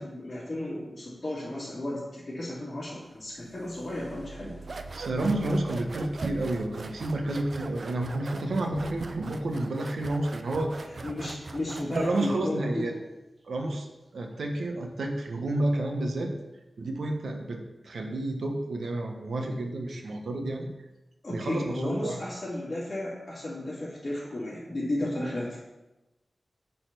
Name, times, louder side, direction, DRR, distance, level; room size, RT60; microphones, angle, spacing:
voice 1, 0.0-4.6 11.0-12.9 21.2-25.6, left 1 dB, 35° left, -10 dB, 2.7 m, -34 dB
sound 1, 2.9-10.7 12.8-12.9 13.4-13.9 14.5-14.6 15.2-15.5, right 3 dB, 30° right, 1.9 m, -50 dB
sound 2, 4.6-12.4, right 3 dB, 55° right, 0.6 m, -40 dB
voice 2, 4.9-10.7 11.9-12.9 13.5-13.9 14.1-16.3 16.8-20.7 21.3-22.2, right 2 dB, 90° right, 3 dB, 1.3 m, -30 dB
8.8 x 4.2 x 6.8 m, 1.0 s
wide cardioid pair, 120°, 0 cm